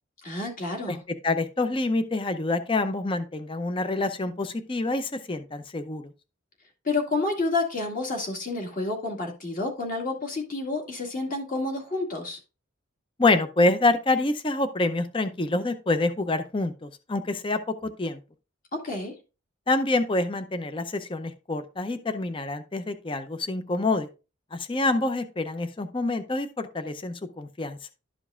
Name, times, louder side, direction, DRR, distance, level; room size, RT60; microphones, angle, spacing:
voice 1, 0.2-1.0 6.8-12.4 18.7-19.2, left 3 dB, 40° left, 1 dB, 2.0 m, -29 dB
voice 2, 1.2-6.0 13.2-18.2 19.7-24.1 24.5-27.8, left 2 dB, 25° left, 10 dB, 0.5 m, -26 dB
12.0 x 5.2 x 2.4 m, 0.31 s
head